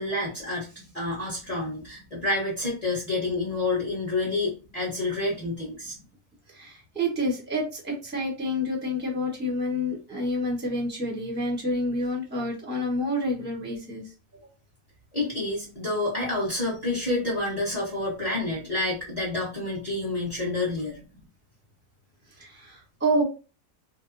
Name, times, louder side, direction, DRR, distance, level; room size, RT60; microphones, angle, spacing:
voice 1, 0.0-6.0 15.1-21.0, left 2 dB, 25° left, -5 dB, 1.0 m, -28 dB
voice 2, 6.5-14.0 22.4-23.2, equal, 10° right, -2 dB, 0.8 m, -28 dB
2.8 x 2.2 x 2.6 m, 0.32 s
omnidirectional pair, 1.7 m